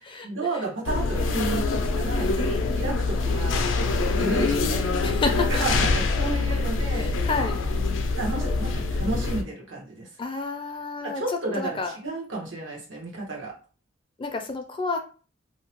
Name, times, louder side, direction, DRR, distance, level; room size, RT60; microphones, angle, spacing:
voice 1, 0.0-3.6 4.2-5.2 5.5-7.1 8.1-10.1 11.0-13.5, right 2 dB, 90° right, -2 dB, 1.1 m, -32 dB
sound 1, 0.8-9.4, left 3 dB, 85° left, 0.4 m, -25 dB
voice 2, 2.1-2.8 4.4-4.5 5.0-5.6 6.9-7.6 10.2-11.2 11.6-11.9 14.2-15.0, left 3 dB, 25° left, 5 dB, 0.4 m, -30 dB
2.8 x 2.0 x 2.9 m, 0.37 s
head